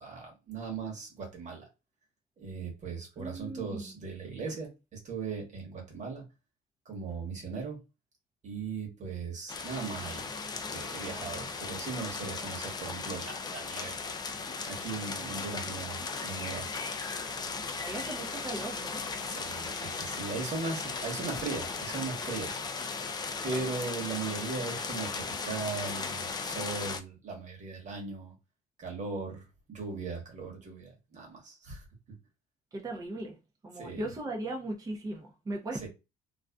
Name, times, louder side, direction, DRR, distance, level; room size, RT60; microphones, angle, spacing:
voice 1, 0.0-1.7 2.4-6.2 6.8-7.8 8.4-10.3 10.7-14.0 14.3-16.7 19.2-22.6 23.4-28.3 28.8-29.4 29.7-31.8 33.7-34.1 35.8-35.9, right 4 dB, 45° right, 1.2 m, -38 dB
voice 2, 3.2-4.0 4.5-4.6 17.8-19.0 32.7-33.4 33.6-35.9, right 2 dB, 20° right, 0.6 m, -38 dB
sound 1, 9.5-27.0, left 4 dB, 25° left, 0.4 m, -37 dB
2.5 x 2.2 x 2.2 m
cardioid pair, 110°, 17 cm